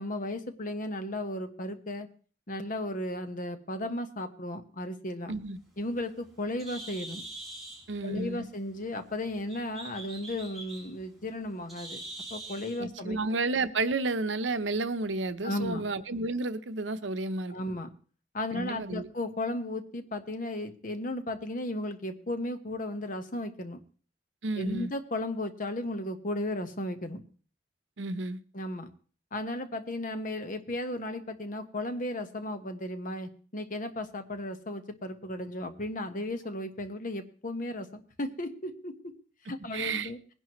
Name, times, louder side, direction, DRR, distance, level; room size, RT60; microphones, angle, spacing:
voice 1, 0.0-2.1 2.5-5.3 5.8-7.2 8.0-12.0 12.3-13.2 15.4-15.8 17.5-17.9 18.3-23.8 24.5-27.2 28.5-28.9 29.3-39.1 39.5-40.2, left 1 dB, 45° left, 1.3 m, -35 dB
Bird, 5.5-12.8, right 2 dB, ahead, 6.1 m, -45 dB
voice 2, 7.9-8.5 12.8-17.6 18.5-19.1 24.4-24.9 28.0-28.4 39.7-40.1, right 3 dB, 85° right, 0.8 m, -31 dB
20.0 x 11.0 x 3.1 m
head